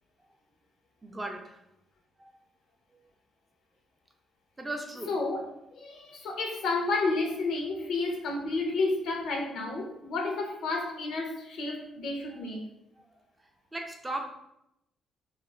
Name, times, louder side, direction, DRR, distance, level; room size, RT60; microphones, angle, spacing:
voice 1, 1.0-1.6 4.6-5.1 13.7-14.3, right 1 dB, 15° right, 2 dB, 0.4 m, -36 dB
voice 2, 5.1-5.4 5.7-12.6, left 3 dB, 75° left, 1 dB, 0.6 m, -31 dB
2.3 x 2.1 x 3.2 m, 0.83 s
cardioid pair, 90°, 0 cm